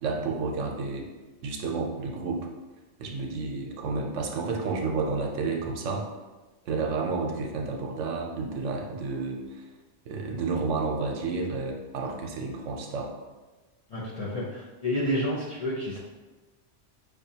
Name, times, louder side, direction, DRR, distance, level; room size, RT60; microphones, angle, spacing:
voice 1, 0.0-1.1 1.4-2.5 3.0-6.1 6.7-9.7 10.1-13.1, right 4 dB, 85° right, 1 dB, 1.0 m, -31 dB
voice 2, 13.9-16.0, equal, 45° left, -6 dB, 0.5 m, -30 dB
5.1 x 2.3 x 2.7 m, 1.2 s
omnidirectional pair, 1.2 m